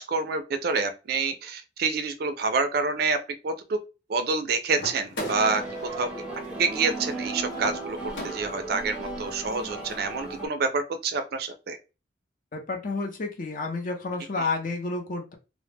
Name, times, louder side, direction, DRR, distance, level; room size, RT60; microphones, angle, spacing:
voice 1, 0.0-3.2 3.4-3.8 4.1-6.1 6.6-11.8 14.4-14.5, right 4 dB, 55° right, 0.4 m, -27 dB
sound 1, 4.7-8.8, equal, 75° left, 0.8 m, -40 dB
sound 2, 5.2-10.5, right 2 dB, 5° right, 0.6 m, -36 dB
voice 2, 12.5-15.3, left 3 dB, 45° left, 0.6 m, -30 dB
2.1 x 2.0 x 3.2 m
head